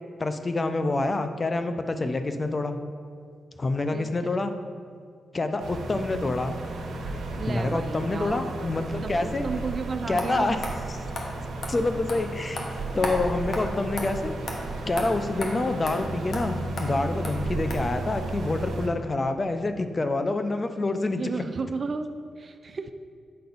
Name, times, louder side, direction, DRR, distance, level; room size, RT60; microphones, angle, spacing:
voice 1, 0.2-2.8 3.6-4.5 5.3-6.6 7.5-9.4 10.1-10.6 11.7-14.3 14.9-21.2, left 2 dB, 30° left, 8 dB, 0.5 m, -27 dB
sound 1, 5.6-18.9, right 2 dB, 85° right, 1.0 m, -34 dB
voice 2, 7.4-10.6 15.4-15.6 21.1-22.9, right 4 dB, 45° right, 9 dB, 0.4 m, -34 dB
sound 2, 10.2-10.3 10.6-10.7 11.2-11.3 11.6-11.7 12.1-12.2 12.6-12.7 13.0-13.2 13.5-13.6 14.0-14.1 14.5-14.6 15.0-15.1 15.4-15.5 15.9-16.0 16.3-16.4 16.8-16.9 17.2-17.3 17.7-17.8, left 2 dB, 55° left, 1.2 m, -32 dB
8.5 x 5.6 x 4.0 m, 2.2 s
cardioid pair, 100°, 0 cm